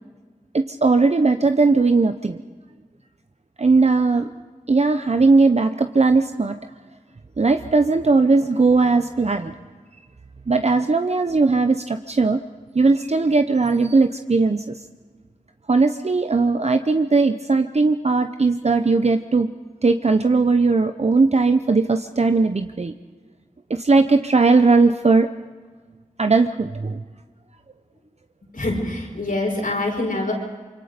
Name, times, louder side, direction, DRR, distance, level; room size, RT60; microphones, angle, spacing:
voice 1, 0.5-2.4 3.6-4.3 4.7-6.6 7.4-9.5 10.5-12.4 12.7-14.7 15.7-19.5 19.8-22.9 23.7-25.3 26.2-27.0, right 3 dB, 50° right, 8 dB, 0.7 m, -18 dB
voice 2, 28.5-30.3, left 2 dB, 85° left, 0 dB, 5.5 m, -25 dB
25.5 x 23.5 x 5.2 m, 1.5 s
wide cardioid pair, 45°, 14 cm